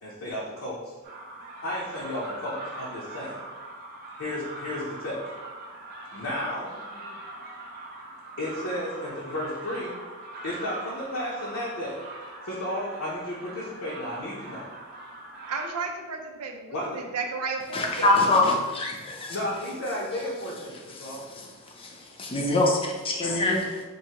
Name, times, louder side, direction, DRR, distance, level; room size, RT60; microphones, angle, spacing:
voice 1, 0.0-0.9 1.6-3.4 4.2-5.2 6.1-6.8 8.4-9.9 10.4-12.0 12.4-14.7 16.7-17.0 19.3-21.3, left 1 dB, 65° left, 0.7 m, -33 dB
sound 1, 1.0-15.7, right 2 dB, 45° right, 0.6 m, -42 dB
voice 2, 15.5-18.4, right 4 dB, 80° right, 0.5 m, -33 dB
voice 3, 17.7-19.4 21.0-21.5 21.8-23.8, left 2 dB, 25° left, 0.5 m, -25 dB
4.6 x 2.6 x 2.8 m
head